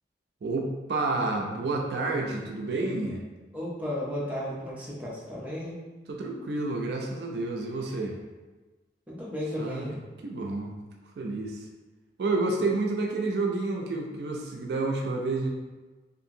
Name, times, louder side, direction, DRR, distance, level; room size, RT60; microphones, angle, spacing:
voice 1, 0.4-3.2 6.1-8.2 9.6-10.8 11.2-11.7 12.2-15.5, right 3 dB, 70° right, 1 dB, 0.4 m, -29 dB
voice 2, 3.5-5.8 9.1-9.9, left 1 dB, 10° right, -7 dB, 0.5 m, -34 dB
2.8 x 2.5 x 2.6 m, 1.2 s
head